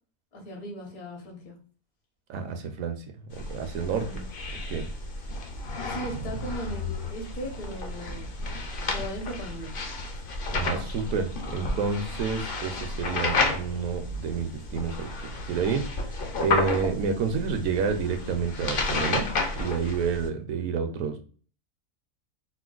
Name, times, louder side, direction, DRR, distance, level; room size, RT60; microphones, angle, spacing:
voice 1, 0.3-1.6 4.0-4.2 5.9-8.3 8.9-9.7 10.1-10.3, equal, 75° left, 0 dB, 1.6 m, -38 dB
voice 2, 2.3-4.2 4.5-4.9 6.2-6.4 10.5-15.1 15.5-21.2, right 6 dB, 70° right, 6 dB, 0.9 m, -29 dB
sound 1, 3.3-20.3, left 3 dB, 55° left, 0.6 m, -32 dB
4.4 x 2.2 x 2.3 m, 0.41 s
omnidirectional pair, 1.6 m